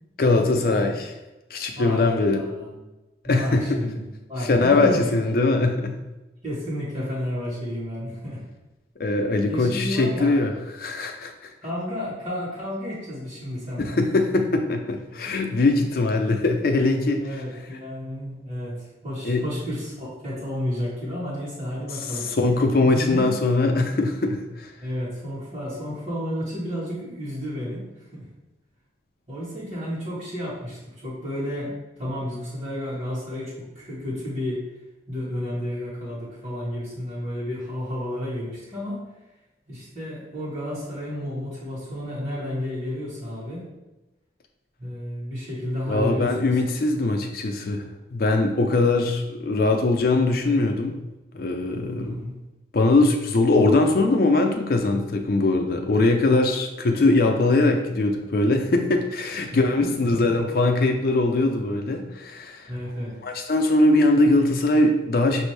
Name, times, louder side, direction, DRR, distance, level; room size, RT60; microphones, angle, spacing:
voice 1, 0.2-1.1 1.5-2.4 3.2-3.8 4.4-6.0 9.0-11.5 13.8-17.4 19.2-19.4 21.9-24.7 45.9-47.8 48.1-51.0 51.3-52.2 52.7-62.7 63.2-65.4, left 2 dB, 50° left, 3 dB, 0.4 m, -21 dB
voice 2, 1.7-2.7 3.2-4.0 4.3-5.2 6.4-8.4 9.5-10.4 11.6-14.0 17.2-18.8 19.0-22.4 22.8-23.3 24.8-27.8 28.1-28.3 29.3-34.6 35.1-39.0 39.7-43.6 44.8-46.5 51.9-52.4 59.5-60.4 62.7-63.2, left 1 dB, 35° right, -9 dB, 1.3 m, -31 dB
6.1 x 2.6 x 3.2 m, 1.0 s
head